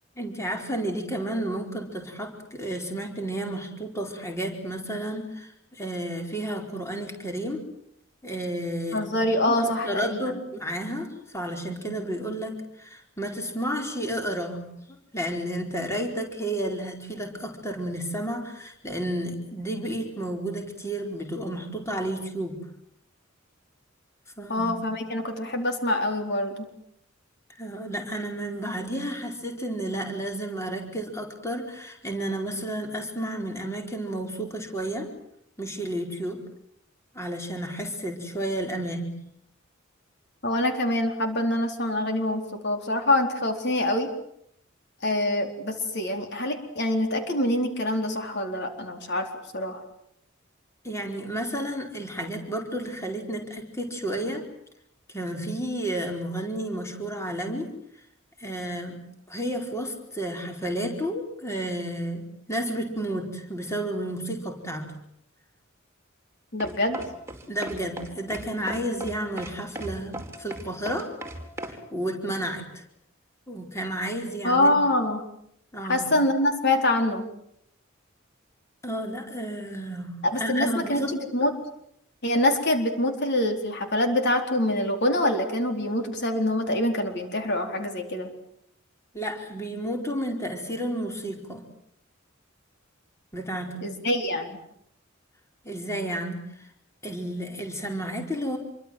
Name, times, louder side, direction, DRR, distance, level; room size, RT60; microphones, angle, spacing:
voice 1, 0.2-7.6 8.2-9.0 9.5-9.6 9.8-14.7 15.1-22.6 24.4-24.8 27.6-35.1 35.6-36.4 37.1-39.1 50.8-54.5 55.1-57.7 58.4-59.0 59.3-64.9 67.5-71.1 71.9-72.8 73.5-74.7 75.7-76.1 78.8-81.2 89.1-91.6 93.3-93.9 95.6-96.7 97.0-98.6, right 1 dB, 15° left, 3 dB, 4.5 m, -31 dB
voice 2, 8.9-10.4 24.5-26.7 40.4-44.1 45.0-49.3 49.5-49.8 66.5-67.0 74.4-75.2 75.9-77.3 80.2-81.0 81.3-81.5 82.2-88.3 93.8-94.6, left 1 dB, 55° left, 5 dB, 4.2 m, -25 dB
sound 1, 66.6-71.8, right 1 dB, 15° right, 4.5 m, -37 dB
27.5 x 24.5 x 7.9 m, 0.72 s
head